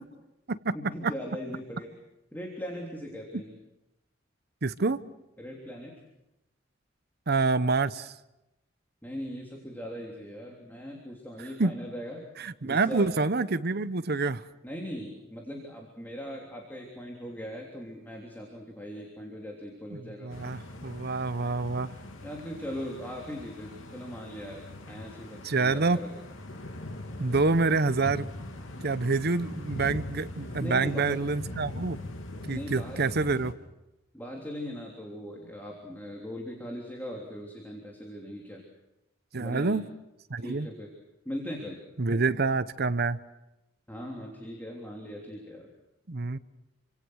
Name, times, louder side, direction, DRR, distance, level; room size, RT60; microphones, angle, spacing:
voice 1, 0.7-1.9 2.3-3.5 5.4-5.9 9.0-12.2 12.6-13.1 14.6-20.3 22.2-26.1 30.6-31.3 32.5-33.2 34.1-38.6 39.4-39.8 40.4-40.9 41.3-41.8 43.9-45.7, equal, 10° left, 0 dB, 3.3 m, -39 dB
voice 2, 4.6-5.0 7.3-8.1 11.6-11.7 12.4-14.4 19.9-21.9 25.4-26.0 27.2-28.3 28.8-32.0 32.5-33.5 39.3-39.8 40.3-40.7 42.0-43.2 46.1-46.4, right 3 dB, 55° right, 14 dB, 0.9 m, -27 dB
sound 1, 20.3-33.5, left 1 dB, 85° left, 2.8 m, -41 dB
28.0 x 25.5 x 6.4 m, 0.95 s
head